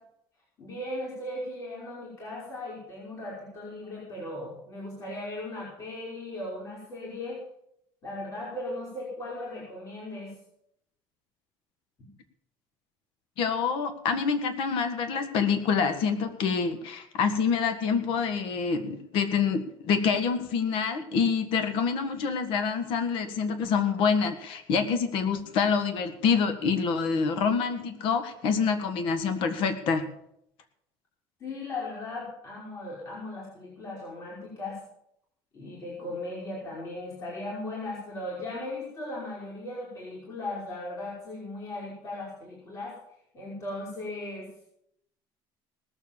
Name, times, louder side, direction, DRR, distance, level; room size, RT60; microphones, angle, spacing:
voice 1, 0.6-7.4 8.0-10.3 12.0-12.1 31.4-34.8 35.5-42.9 43.3-44.5, left 2 dB, 35° left, -5 dB, 5.2 m, -37 dB
voice 2, 13.4-30.1, left 5 dB, 65° left, 9 dB, 1.7 m, -26 dB
19.0 x 7.5 x 7.2 m, 0.77 s
cardioid pair, 140°, 9 cm